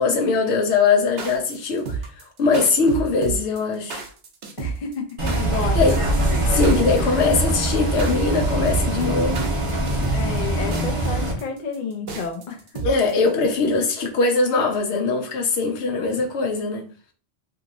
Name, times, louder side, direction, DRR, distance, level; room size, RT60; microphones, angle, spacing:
voice 1, 0.0-2.0 2.4-4.0 5.8-6.0 6.4-9.5 12.8-16.8, left 4 dB, 85° left, 1.0 m, -21 dB
sound 1, 1.0-13.3, right 5 dB, 65° right, 0.9 m, -31 dB
voice 2, 4.6-6.0 7.0-7.3 10.1-12.8, left 5 dB, 55° left, 0.6 m, -31 dB
Bus, 5.2-11.3, right 1 dB, 35° right, 0.7 m, -23 dB
2.9 x 2.7 x 2.6 m
omnidirectional pair, 1.1 m